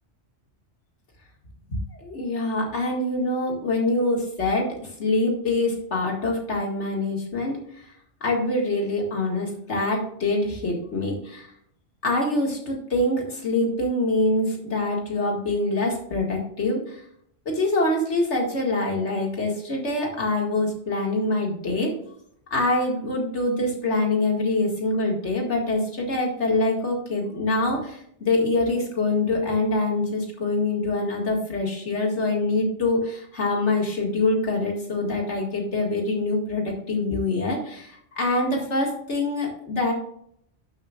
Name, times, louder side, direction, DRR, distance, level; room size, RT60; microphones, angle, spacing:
voice 1, 1.7-4.7 5.0-7.6 8.2-11.5 12.0-17.0 17.5-21.9 22.5-39.9, left 2 dB, 85° left, 0 dB, 2.4 m, -25 dB
11.5 x 7.3 x 2.4 m, 0.68 s
omnidirectional pair, 1.2 m